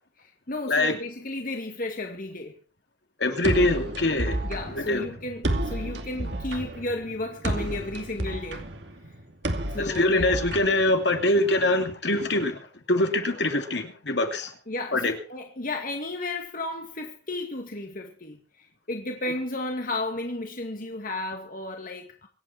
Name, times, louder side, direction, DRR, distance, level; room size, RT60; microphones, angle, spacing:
voice 1, 0.2-2.6 4.4-8.7 9.7-10.4 14.7-22.3, left 2 dB, 45° left, 2.1 m, -33 dB
voice 2, 3.2-4.4 4.7-5.0 9.8-14.5 14.9-15.1, left 2 dB, 65° left, 2.7 m, -24 dB
sound 1, 3.4-11.4, right 1 dB, 65° right, 2.5 m, -31 dB
25.5 x 9.0 x 4.4 m
head